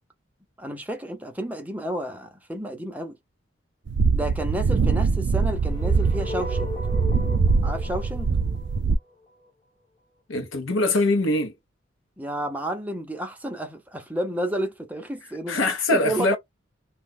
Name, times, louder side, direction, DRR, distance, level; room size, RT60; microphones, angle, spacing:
voice 1, 0.6-3.2 4.1-6.7 7.6-8.3 12.2-15.6 15.9-16.4, right 1 dB, 10° right, 0.6 m, -31 dB
sound 1, 3.9-9.0, right 4 dB, 60° right, 0.4 m, -23 dB
sound 2, 5.4-9.5, left 2 dB, 25° left, 1.0 m, -37 dB
voice 2, 10.3-11.5 15.5-16.4, left 2 dB, 80° left, 0.9 m, -22 dB
2.5 x 2.2 x 3.4 m
head